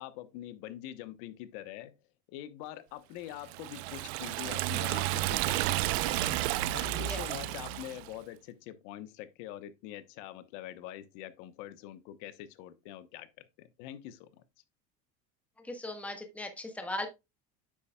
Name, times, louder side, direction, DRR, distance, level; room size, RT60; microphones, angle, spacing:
voice 1, 0.0-1.9 2.3-6.4 6.7-14.4, left 12 dB, 75° left, 1.1 m, -44 dB
Liquid, 3.5-8.1, right 15 dB, 85° right, 0.7 m, -32 dB
voice 2, 15.6-17.1, left 1 dB, 5° left, 1.3 m, -38 dB
9.5 x 7.4 x 2.3 m
supercardioid pair, 125°, 30 cm